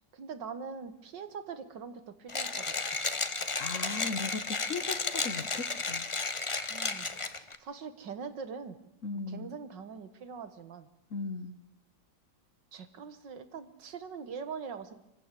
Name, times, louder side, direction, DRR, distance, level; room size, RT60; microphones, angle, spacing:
voice 1, 0.0-3.0 6.7-8.8 9.3-10.9 12.7-14.9, right 5 dB, 75° right, 11 dB, 2.1 m, -43 dB
Mechanisms, 2.3-7.6, left 3 dB, 25° left, 0.7 m, -33 dB
voice 2, 3.6-6.1 9.0-9.5 11.1-11.6, left 4 dB, 50° left, 11 dB, 1.3 m, -37 dB
24.5 x 15.5 x 8.4 m, 0.86 s
omnidirectional pair, 2.0 m